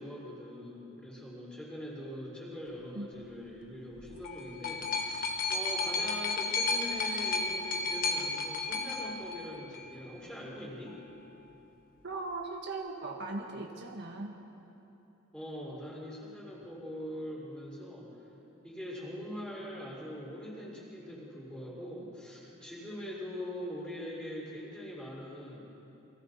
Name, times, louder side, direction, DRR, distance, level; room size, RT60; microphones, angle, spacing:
voice 1, 0.0-11.0 15.3-18.2 18.6-25.6, equal, 5° left, -5 dB, 5.3 m, -42 dB
sound 1, 4.0-10.0 10.9-11.0, left 3 dB, 40° left, 1.7 m, -33 dB
voice 2, 12.0-14.3, right 2 dB, 55° right, 1 dB, 1.5 m, -38 dB
29.5 x 24.0 x 4.2 m, 3.0 s
head